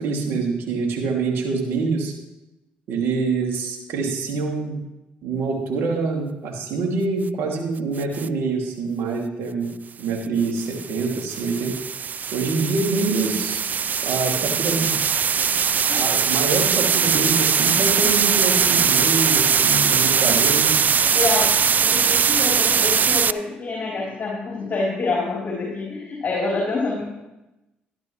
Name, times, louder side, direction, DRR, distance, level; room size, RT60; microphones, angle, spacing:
voice 1, 0.0-2.1 2.9-4.8 5.2-9.7 10.0-11.7 12.3-13.7 14.0-14.9 15.9-20.8, right 4 dB, 70° right, 0 dB, 2.5 m, -25 dB
sound 1, 8.0-8.3 10.4-23.3, right 7 dB, 45° right, 0.3 m, -20 dB
voice 2, 21.1-27.0, left 3 dB, 45° left, -5 dB, 3.7 m, -26 dB
13.0 x 11.5 x 3.2 m, 0.96 s
hypercardioid pair, 55°, 4 cm